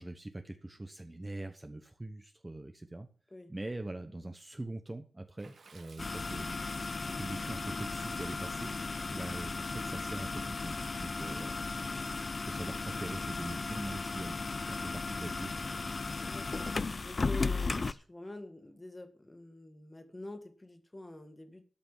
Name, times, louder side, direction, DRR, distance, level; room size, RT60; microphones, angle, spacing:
voice 1, 0.0-3.1 3.5-8.7 9.1-14.4 14.7-15.6, right 2 dB, 15° right, 7 dB, 1.0 m, -43 dB
Water / Splash splatter, 5.4-9.9, right 4 dB, 65° right, 1.8 m, -61 dB
sound 1, 6.0-17.9, left 3 dB, 40° left, 0.5 m, -36 dB
voice 2, 16.2-21.6, left 1 dB, 20° left, 7 dB, 1.9 m, -46 dB
13.0 x 5.9 x 7.3 m, 0.41 s
wide cardioid pair, 150°, 0 cm